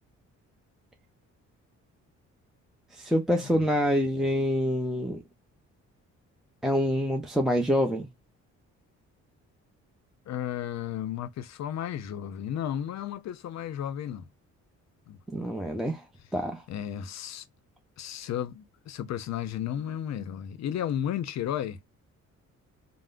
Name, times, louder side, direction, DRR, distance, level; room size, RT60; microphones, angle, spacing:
voice 1, 2.9-5.2 6.6-8.1 15.3-16.0 16.3-16.6, equal, ahead, 0.5 m, -26 dB
voice 2, 10.3-14.3 15.1-15.2 16.7-17.5 18.0-21.8, left 10 dB, 60° left, 0.6 m, -33 dB
3.5 x 2.0 x 2.4 m
cardioid pair, 90°, 30 cm